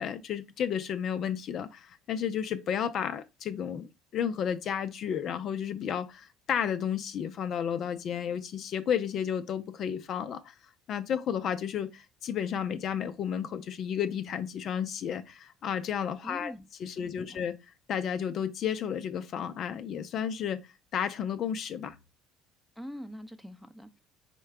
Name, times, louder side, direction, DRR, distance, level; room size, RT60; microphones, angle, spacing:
voice 1, 0.0-10.5 10.9-16.5 16.8-17.6 17.9-20.6 20.9-22.0, left 8 dB, 55° left, 0.5 m, -32 dB
voice 2, 16.2-16.7 16.9-17.4 22.8-24.0, equal, ahead, 0.6 m, -44 dB
4.4 x 2.2 x 4.7 m
supercardioid pair, 85°, 0 cm